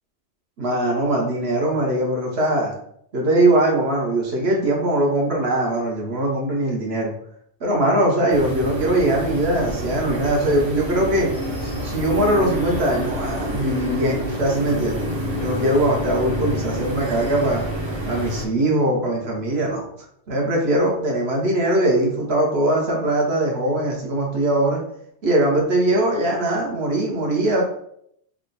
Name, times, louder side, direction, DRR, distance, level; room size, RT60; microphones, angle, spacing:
voice 1, 0.6-2.7 3.1-7.1 7.6-11.3 11.6-15.0 15.4-17.7 18.1-19.8 20.3-24.8 25.2-27.6, right 1 dB, 60° right, -1 dB, 1.2 m, -21 dB
sound 1, 8.3-18.4, right 1 dB, 30° right, 0.6 m, -28 dB
3.6 x 2.3 x 3.9 m, 0.69 s
omnidirectional pair, 1.2 m